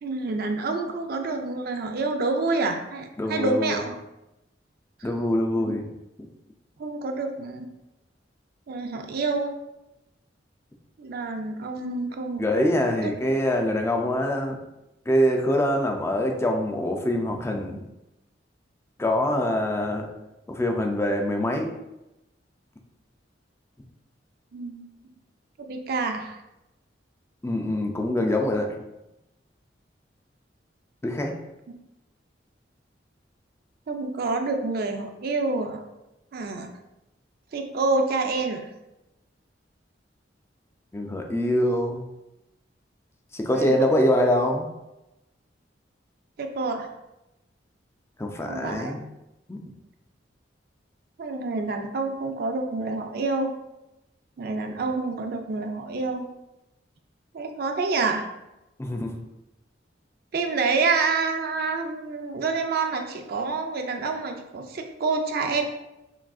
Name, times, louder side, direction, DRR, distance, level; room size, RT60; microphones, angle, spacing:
voice 1, 0.0-4.0 5.5-5.8 6.8-7.7 8.7-9.5 11.0-12.7 13.0-13.1 24.5-24.8 25.6-26.4 33.9-35.8 36.3-36.7 37.5-38.7 43.5-43.9 46.4-46.9 48.4-48.9 51.2-53.5 54.4-56.3 57.3-58.3 60.3-65.6, right 3 dB, 55° right, 5 dB, 0.4 m, -28 dB
voice 2, 3.2-3.8 5.0-5.9 6.2-6.3 12.4-14.6 15.1-17.8 19.0-20.1 20.5-21.7 27.4-28.7 31.0-31.3 40.9-42.0 43.3-44.7 48.2-49.0 49.5-49.6 58.8-59.1, left 1 dB, 15° left, 2 dB, 0.4 m, -24 dB
5.8 x 2.5 x 2.3 m, 0.93 s
head